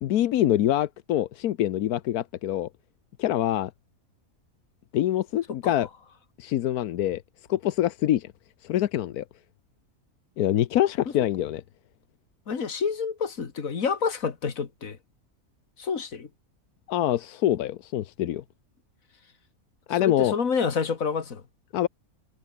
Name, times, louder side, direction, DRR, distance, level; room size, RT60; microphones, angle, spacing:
voice 1, 0.0-2.7 3.2-3.7 4.9-5.9 6.4-7.2 7.5-8.3 8.6-9.2 10.4-11.6 16.9-18.4 19.9-20.4 21.7-21.9, left 12 dB, 90° left, 1.2 m, -25 dB
voice 2, 12.5-15.0 15.8-16.3 20.0-21.4, left 5 dB, 65° left, 2.3 m, -28 dB
omnidirectional pair, 1.6 m